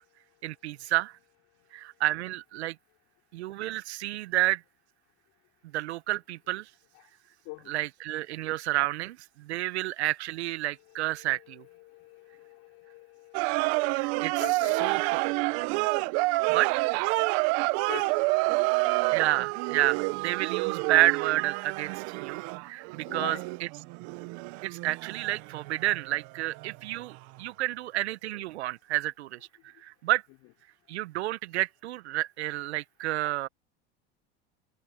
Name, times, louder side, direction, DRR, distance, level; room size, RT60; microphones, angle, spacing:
voice 1, 0.4-1.1 1.7-2.7 3.3-4.6 5.7-6.7 7.7-11.6 13.5-13.6 13.9-14.4 14.8-15.0 16.5-16.9 19.1-23.7 24.6-29.4 29.8-30.2 30.9-33.5, right 16 dB, 80° right, 1.3 m, -30 dB
voice 2, 10.9-15.9 17.9-18.2 23.1-23.5, left 27 dB, 65° left, 5.7 m, -45 dB
sound 1, 13.3-26.8 27.0-27.2, right 27 dB, 65° right, 1.6 m, -28 dB
hypercardioid pair, 80°, 33 cm